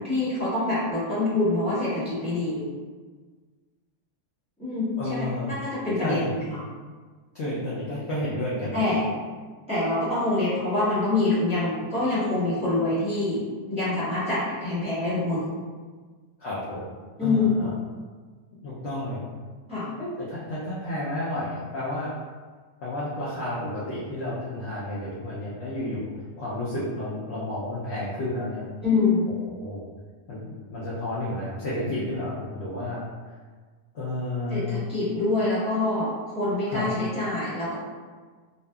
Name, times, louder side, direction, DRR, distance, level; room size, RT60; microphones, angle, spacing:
voice 1, 0.0-2.7 4.6-6.6 8.7-9.1 9.7-13.4 13.7-15.5 17.2-17.6 19.7-19.9 28.8-29.3 34.5-37.8, left 2 dB, 5° right, -13 dB, 0.8 m, -25 dB
voice 2, 5.0-5.6 6.0-6.3 7.3-8.8 16.4-17.7 18.6-19.2 20.0-22.1 22.8-26.1 26.4-28.6 29.6-29.8 30.3-33.1 33.9-34.8 36.7-36.9, left 1 dB, 70° left, -8 dB, 0.6 m, -31 dB
2.6 x 2.4 x 2.2 m, 1.5 s
omnidirectional pair, 1.7 m